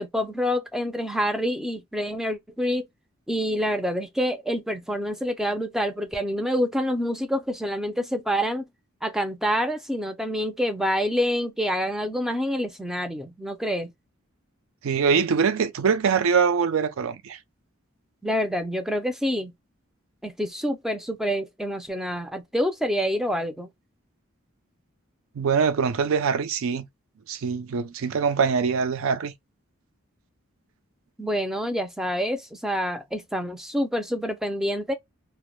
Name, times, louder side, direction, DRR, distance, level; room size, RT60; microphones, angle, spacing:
voice 1, 0.0-2.9 3.3-8.6 9.0-13.9 18.2-19.5 20.2-23.7 31.2-34.9, equal, ahead, 0.3 m, -27 dB
voice 2, 14.8-17.4 25.4-26.9 27.3-29.3, right 6 dB, 75° right, 0.4 m, -23 dB
2.1 x 2.0 x 3.0 m
head